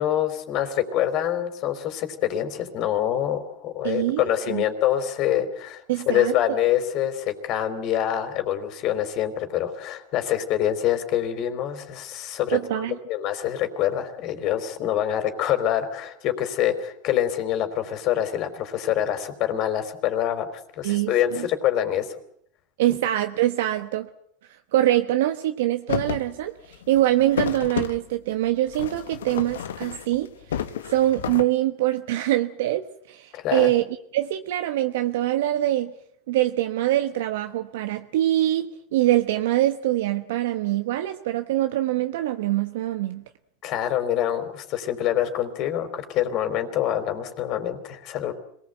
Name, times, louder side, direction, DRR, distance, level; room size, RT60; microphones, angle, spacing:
voice 1, 0.0-20.5 20.8-22.1 33.3-33.7 43.6-48.3, left 11 dB, 50° left, 9 dB, 3.9 m, -25 dB
voice 2, 3.8-4.6 5.9-6.3 12.5-13.0 20.8-21.5 22.8-24.1 24.7-30.6 30.9-33.8 34.1-35.9 36.3-43.2, right 14 dB, 75° right, 7 dB, 1.1 m, -24 dB
sound 1, 25.9-26.3 26.6-28.0 28.7-30.2 30.5-31.4, left 9 dB, 85° left, 1.3 m, -31 dB
26.0 x 19.5 x 7.9 m, 0.71 s
hypercardioid pair, 105°, 0 cm